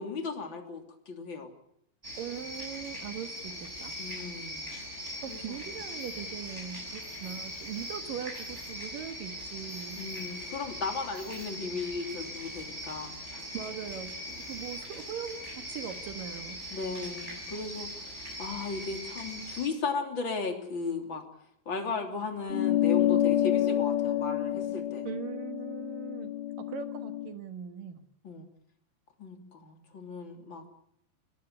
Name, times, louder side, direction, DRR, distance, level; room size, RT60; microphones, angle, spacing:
voice 1, 0.0-1.5 4.0-4.7 5.3-5.7 10.0-13.1 16.7-18.1 18.4-21.2 21.6-25.1 28.2-28.4 29.2-30.6, left 4 dB, 30° left, 4 dB, 2.8 m, -36 dB
sound 1, 2.0-19.7, equal, 15° right, 5.6 m, -41 dB
voice 2, 2.2-4.0 5.2-10.0 13.5-16.6 25.0-26.3 26.7-28.0, right 9 dB, 60° right, 8 dB, 2.4 m, -40 dB
sound 2, 22.5-27.3, left 12 dB, 75° left, 4.1 m, -28 dB
25.0 x 19.0 x 8.2 m, 0.71 s
omnidirectional pair, 5.9 m